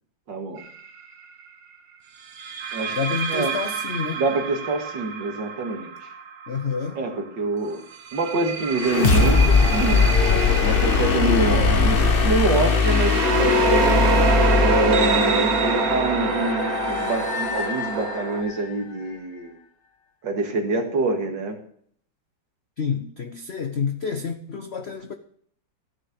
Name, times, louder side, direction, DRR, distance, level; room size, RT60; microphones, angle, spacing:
voice 1, 0.3-0.6 2.7-2.9 3.3-3.5 4.2-5.9 7.0-7.8 8.1-10.0 10.6-14.1 14.6-19.6 20.2-21.6, right 2 dB, 70° right, 2.5 m, -26 dB
sound 1, 0.6-0.9 2.4-7.1 7.9-18.4, right 4 dB, 55° right, 1.4 m, -26 dB
voice 2, 2.9-4.2 6.5-7.0 22.8-25.1, left 6 dB, 60° left, 0.6 m, -28 dB
sound 2, 8.7-18.5, left 4 dB, 40° left, 0.9 m, -21 dB
14.5 x 6.7 x 6.8 m
omnidirectional pair, 2.1 m